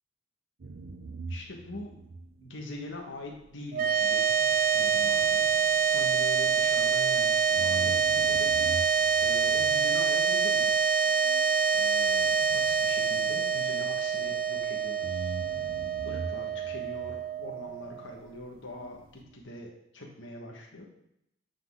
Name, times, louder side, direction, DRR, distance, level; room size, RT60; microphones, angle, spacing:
sound 1, 0.6-7.1 7.6-14.6 15.0-19.4, right 3 dB, 80° right, 0.6 m, -44 dB
voice 1, 1.3-2.0 2.4-11.1 11.7-15.3 15.6-15.7 16.0-20.8, left 1 dB, 65° left, 0 dB, 1.4 m, -43 dB
sound 2, 3.7-18.2, right 6 dB, 45° right, 0.4 m, -26 dB
8.8 x 4.0 x 3.6 m, 0.76 s
head